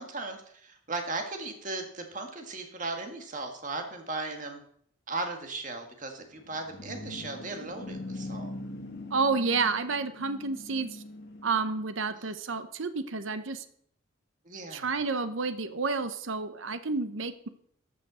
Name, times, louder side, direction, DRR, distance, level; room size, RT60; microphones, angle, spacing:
voice 1, 0.0-4.6 5.1-8.5 12.1-12.4 14.4-15.0, right 3 dB, 40° right, 4 dB, 1.8 m, -37 dB
sound 1, 6.3-11.9, left 1 dB, 55° left, 1.3 m, -42 dB
voice 2, 9.1-11.0 11.4-13.6 14.7-17.5, right 4 dB, 75° right, 10 dB, 0.9 m, -30 dB
13.5 x 5.8 x 6.2 m, 0.64 s
head